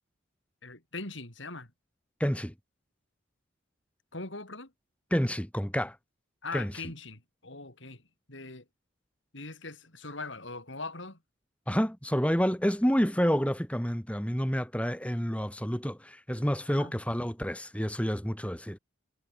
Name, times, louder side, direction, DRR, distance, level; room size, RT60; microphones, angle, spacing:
voice 1, 0.6-1.7 4.1-4.7 6.4-8.0 8.3-8.6 9.3-11.2 16.7-17.0, left 3 dB, 65° left, 5.0 m, -41 dB
voice 2, 2.2-2.5 5.1-6.0 6.5-6.7 11.7-18.8, equal, 5° left, 6.0 m, -29 dB
head